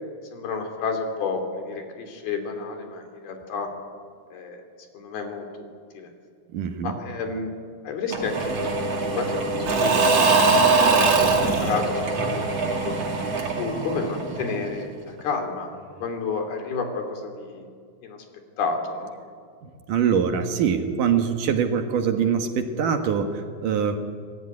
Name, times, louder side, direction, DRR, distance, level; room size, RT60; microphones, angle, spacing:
voice 1, 0.3-3.7 4.3-4.6 4.9-5.7 5.9-6.1 6.8-7.5 7.8-10.3 10.6-12.9 13.6-15.7 16.0-17.7 18.0-18.2 18.6-19.1, left 4 dB, 75° left, 5 dB, 4.8 m, -31 dB
voice 2, 6.5-6.9 19.9-24.0, right 7 dB, 65° right, 6 dB, 2.8 m, -23 dB
Engine / Mechanisms / Drill, 8.1-14.8, right 3 dB, 45° right, 3.3 m, -22 dB
26.0 x 20.0 x 9.6 m, 2.1 s
omnidirectional pair, 4.4 m